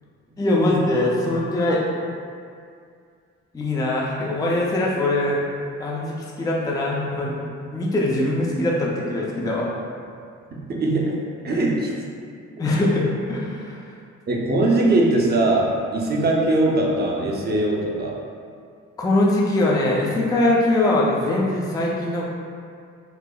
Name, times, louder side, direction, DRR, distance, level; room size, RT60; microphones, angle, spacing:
voice 1, 0.4-1.8 3.5-5.4 5.8-9.7 11.5-11.6 12.6-13.9 19.0-22.2, left 1 dB, 10° left, -4 dB, 0.4 m, -22 dB
voice 2, 10.5-11.2 11.4-11.9 14.3-18.2, right 2 dB, 35° right, -2 dB, 0.6 m, -21 dB
5.4 x 2.0 x 2.3 m, 2.2 s
cardioid pair, 90°, 30 cm